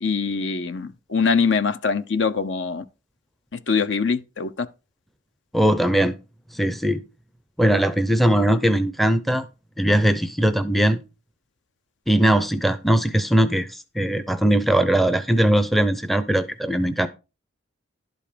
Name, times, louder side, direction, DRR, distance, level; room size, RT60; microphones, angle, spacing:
voice 1, 0.0-2.8 3.5-4.7, left 5 dB, 60° left, 0.7 m, -23 dB
voice 2, 5.5-6.1 6.5-7.0 7.6-9.5 9.8-11.0 12.1-17.1, right 1 dB, ahead, 0.6 m, -20 dB
11.5 x 5.4 x 5.1 m
head